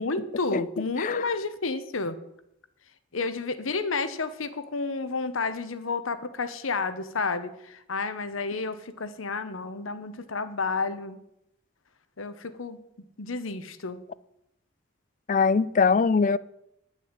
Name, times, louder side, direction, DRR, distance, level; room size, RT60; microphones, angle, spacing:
voice 1, 0.0-2.2 3.1-11.2 12.2-12.8 13.2-14.0, left 4 dB, 85° left, 1.0 m, -31 dB
voice 2, 15.3-16.4, left 5 dB, 40° left, 0.4 m, -22 dB
10.5 x 6.4 x 8.9 m
head